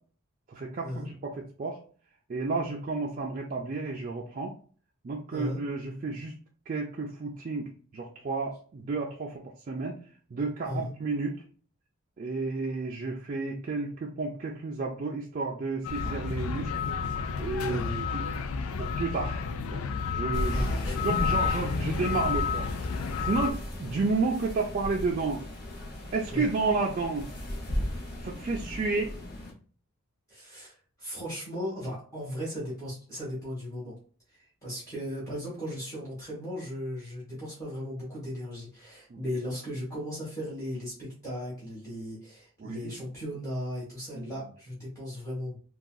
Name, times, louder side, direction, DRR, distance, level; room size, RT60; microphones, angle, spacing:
voice 1, 0.5-1.8 2.3-4.5 5.0-6.3 6.7-10.0 10.3-11.4 12.2-16.7 17.4-18.3 18.8-19.4 19.7-19.8 20.1-20.6 20.9-22.7 22.9-25.4 26.1-27.3 28.2-29.1 42.6-42.9 44.1-44.3, right 3 dB, 40° right, -1 dB, 0.4 m, -31 dB
sound 1, 15.8-23.5, left 5 dB, 80° left, 0.4 m, -31 dB
voice 2, 17.6-17.9 20.5-21.1 26.3-26.5 30.3-33.9 34.3-45.6, equal, 15° left, -8 dB, 1.2 m, -36 dB
sound 2, 20.3-29.5, equal, 45° left, 0.9 m, -36 dB
3.7 x 2.3 x 2.2 m, 0.43 s
head